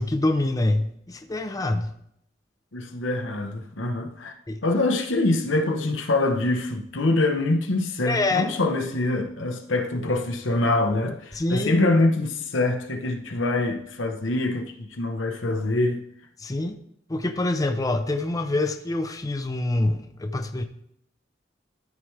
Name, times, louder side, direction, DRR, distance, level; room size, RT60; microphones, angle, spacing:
voice 1, 0.0-1.9 4.5-4.6 8.1-8.5 11.3-11.8 16.4-16.8 17.1-20.6, left 2 dB, 20° left, 0.5 m, -25 dB
voice 2, 2.7-4.3 4.6-16.0, left 2 dB, 85° left, 1.0 m, -24 dB
12.5 x 4.7 x 3.2 m
head